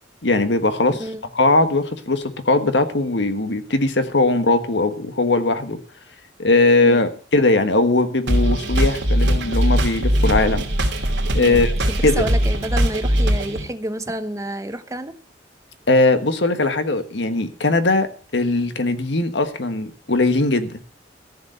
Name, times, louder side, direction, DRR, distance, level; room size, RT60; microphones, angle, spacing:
voice 1, 0.2-1.0 1.3-5.8 6.4-10.6 11.3-11.7 12.0-12.2 15.9-18.1 18.3-20.8, left 2 dB, 75° left, 9 dB, 1.5 m, -19 dB
sound 1, 8.3-13.6, equal, 75° right, 2.7 m, -20 dB
voice 2, 12.2-15.1, right 1 dB, 20° right, 9 dB, 1.0 m, -29 dB
14.0 x 6.8 x 7.9 m, 0.43 s
head